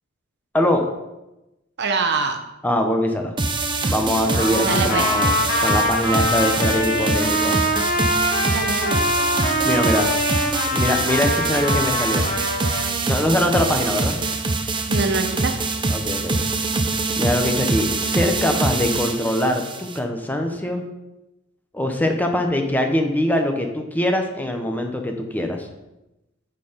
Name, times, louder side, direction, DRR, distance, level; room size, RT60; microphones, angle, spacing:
voice 1, 0.5-0.9 2.6-3.3 3.8-7.6 9.6-10.5 10.7-12.3 13.1-14.2 15.9-16.4 17.2-20.8 21.7-25.7, left 1 dB, 10° left, 4 dB, 0.8 m, -23 dB
voice 2, 1.8-2.4 4.6-5.1 8.5-9.0 14.9-15.5, right 4 dB, 55° right, 6 dB, 0.7 m, -24 dB
sound 1, 3.4-20.0, right 3 dB, 25° right, 0.6 m, -24 dB
Trumpet, 4.3-12.9, left 1 dB, 55° left, 1.7 m, -23 dB
9.0 x 4.5 x 5.1 m, 0.95 s
head